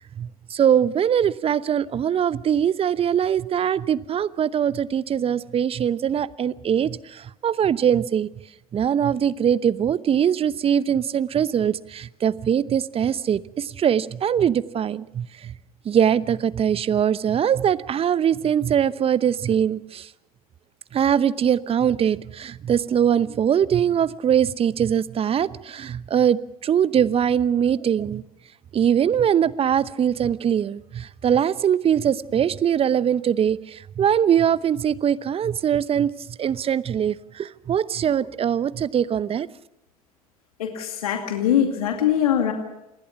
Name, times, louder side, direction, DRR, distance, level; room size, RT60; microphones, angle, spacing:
voice 1, 0.0-8.3 8.7-15.5 15.8-20.1 20.9-28.2 28.7-39.5, right 8 dB, 30° right, 18 dB, 0.8 m, -22 dB
voice 2, 40.6-42.5, left 10 dB, 75° left, 4 dB, 2.4 m, -22 dB
27.5 x 20.5 x 5.9 m, 0.90 s
hypercardioid pair, 75°, 19 cm